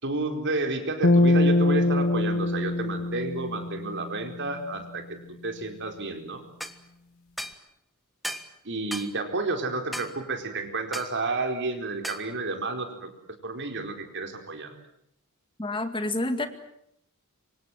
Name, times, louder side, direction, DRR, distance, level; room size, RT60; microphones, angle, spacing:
voice 1, 0.0-6.4 8.6-13.1 13.4-14.7, right 2 dB, 55° right, 5 dB, 4.4 m, -31 dB
sound 1, 1.0-4.4, left 2 dB, 70° left, 2.2 m, -23 dB
sound 2, 6.6-6.8 7.4-7.6 8.2-8.5 8.9-9.1 9.9-10.1 10.9-11.1 12.0-12.3, equal, ahead, 1.5 m, -35 dB
voice 2, 15.6-16.5, left 2 dB, 25° left, 9 dB, 2.0 m, -28 dB
27.0 x 25.0 x 7.7 m, 0.74 s
head